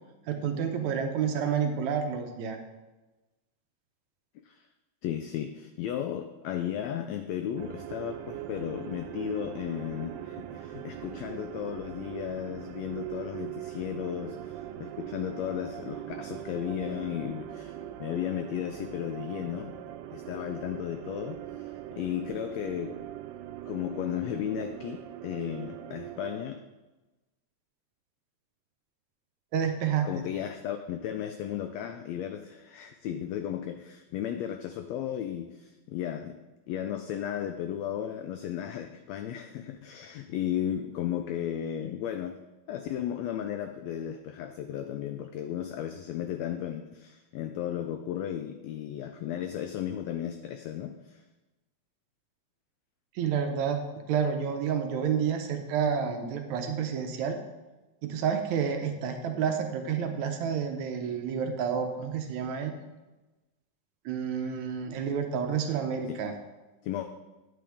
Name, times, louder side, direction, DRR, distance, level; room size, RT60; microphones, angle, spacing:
voice 1, 0.3-2.6 29.5-30.1 53.2-53.8 54.1-57.4 58.0-62.8 64.1-66.3, right 7 dB, 75° right, 5 dB, 1.9 m, -29 dB
voice 2, 5.0-19.7 20.1-22.9 23.7-26.6 30.0-36.4 36.7-42.4 42.7-51.2 66.1-66.2 66.8-67.1, left 10 dB, 90° left, 8 dB, 1.5 m, -35 dB
sound 1, 7.6-26.5, right 12 dB, 90° right, 2.2 m, -41 dB
9.9 x 7.8 x 3.5 m, 1.1 s
omnidirectional pair, 3.6 m